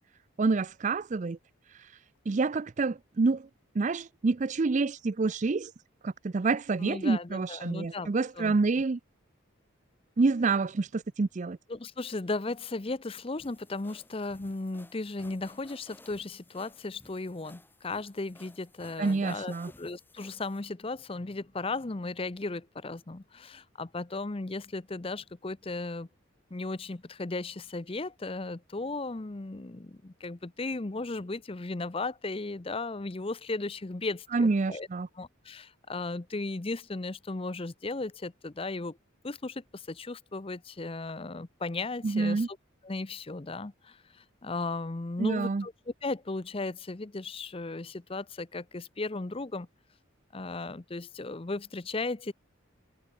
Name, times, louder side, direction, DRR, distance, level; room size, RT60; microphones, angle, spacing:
voice 1, 0.4-1.4 2.3-3.5 3.7-5.7 6.0-9.0 10.2-11.6 19.0-19.7 34.3-35.1 42.0-42.5 45.2-45.7, right 3 dB, 35° right, 0.4 m, -27 dB
voice 2, 6.8-8.1 8.4-8.5 11.7-26.1 26.5-34.9 35.2-39.0 39.2-42.6 42.8-49.7 50.3-52.3, left 3 dB, 30° left, 0.6 m, -36 dB
sound 1, 13.4-20.6, left 2 dB, 10° left, 3.6 m, -57 dB
head